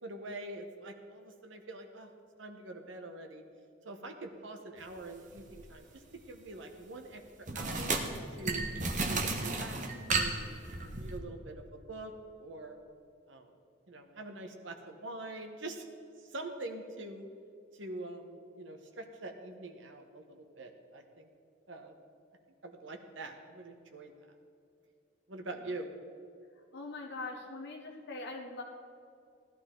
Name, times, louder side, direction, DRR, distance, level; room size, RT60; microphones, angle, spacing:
voice 1, 0.0-2.1 2.4-3.4 3.8-7.2 7.5-7.9 8.4-8.7 9.1-12.1 12.4-12.8 13.3-13.5 13.9-15.8 16.2-17.3 17.7-21.3 21.7-21.9 22.6-24.1 25.3-25.9, right 2 dB, 70° right, 4 dB, 1.2 m, -44 dB
sound 1, 5.4-5.6 7.5-11.2, right 3 dB, 40° right, 1.1 m, -33 dB
voice 2, 26.7-28.6, left 3 dB, 55° left, 0 dB, 1.0 m, -42 dB
16.0 x 11.5 x 3.9 m, 2.5 s
head